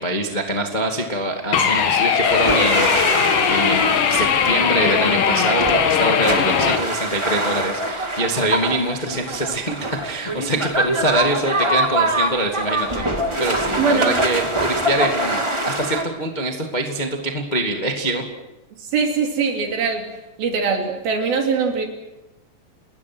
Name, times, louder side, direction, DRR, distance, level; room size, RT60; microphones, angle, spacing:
voice 1, 0.0-3.1 3.5-13.1 13.4-18.2, right 1 dB, 20° left, 2 dB, 1.3 m, -24 dB
sound 1, 1.5-6.8, left 7 dB, 55° left, 3.0 m, -19 dB
sound 2, 2.2-16.0, right 1 dB, 35° right, 0.4 m, -24 dB
voice 2, 13.8-14.2 18.8-21.9, right 5 dB, 60° right, 3 dB, 4.6 m, -22 dB
29.5 x 20.5 x 6.3 m, 1.0 s
omnidirectional pair, 5.0 m